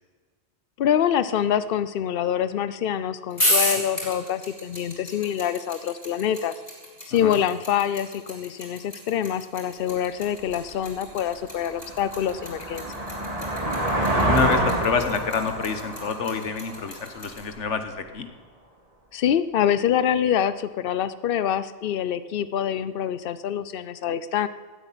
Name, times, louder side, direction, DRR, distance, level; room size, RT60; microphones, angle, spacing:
voice 1, 0.8-6.5 7.1-12.9 19.1-24.5, left 9 dB, 55° left, 15 dB, 0.8 m, -25 dB
sound 1, 3.3-17.4, left 1 dB, 30° left, 4.2 m, -30 dB
sound 2, 10.5-10.6 11.1-17.6, right 1 dB, 30° right, 2.8 m, -27 dB
voice 2, 14.1-18.3, left 6 dB, 85° left, 8 dB, 1.5 m, -27 dB
15.5 x 8.3 x 9.9 m, 1.5 s
omnidirectional pair, 1.2 m